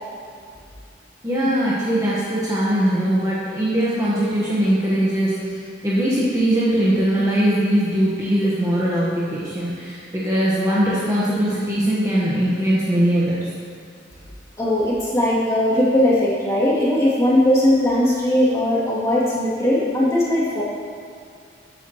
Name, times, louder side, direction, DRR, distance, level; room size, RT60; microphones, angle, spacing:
voice 1, 1.2-13.5, right 1 dB, 15° right, -8 dB, 1.3 m, -21 dB
voice 2, 14.6-20.6, left 1 dB, 15° left, -9 dB, 2.6 m, -19 dB
14.0 x 8.7 x 3.1 m, 2.3 s
head